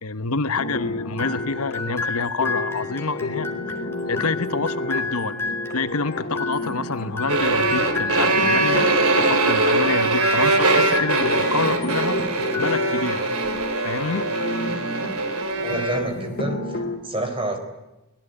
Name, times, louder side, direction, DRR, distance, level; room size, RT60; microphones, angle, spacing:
voice 1, 0.0-5.4 5.7-9.0 9.3-12.2 12.6-13.3 13.8-14.3, left 4 dB, 80° left, 12 dB, 1.1 m, -27 dB
sound 1, 0.5-17.0, left 2 dB, 45° left, 2.8 m, -31 dB
sound 2, 1.2-12.0 12.4-13.3, left 3 dB, 10° left, 2.9 m, -32 dB
sound 3, 7.3-16.1, right 3 dB, 80° right, 3.4 m, -22 dB
voice 2, 15.6-17.6, right 1 dB, 25° right, 7 dB, 4.3 m, -28 dB
24.5 x 19.0 x 9.9 m, 0.98 s
head